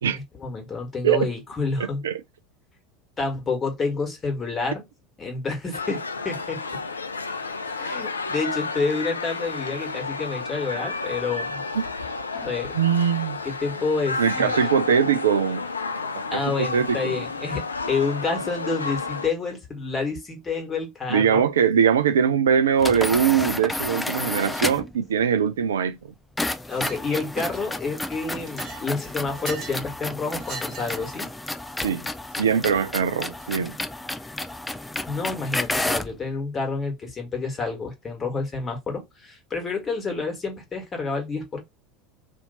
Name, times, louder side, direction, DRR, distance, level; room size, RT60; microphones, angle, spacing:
voice 1, 0.0-2.0 3.2-4.8 5.2-6.6 7.7-11.6 12.3-12.7 13.4-14.6 16.3-21.4 26.6-31.3 35.1-41.6, left 4 dB, 25° left, 1.5 m, -29 dB
sound 1, 5.7-19.3, left 4 dB, 80° left, 0.4 m, -31 dB
voice 2, 12.7-13.4 14.2-15.7 16.3-17.1 21.1-26.0 31.8-32.0 32.4-33.8, right 7 dB, 70° right, 0.3 m, -21 dB
sound 2, 22.8-25.0 26.4-36.2, left 2 dB, 10° left, 0.4 m, -31 dB
Chink clink, 26.7-27.0 27.4-27.9 28.3-29.8 30.4-31.1, right 5 dB, 45° right, 1.2 m, -39 dB
2.8 x 2.5 x 4.2 m
figure-of-eight pair, 75°, 0 cm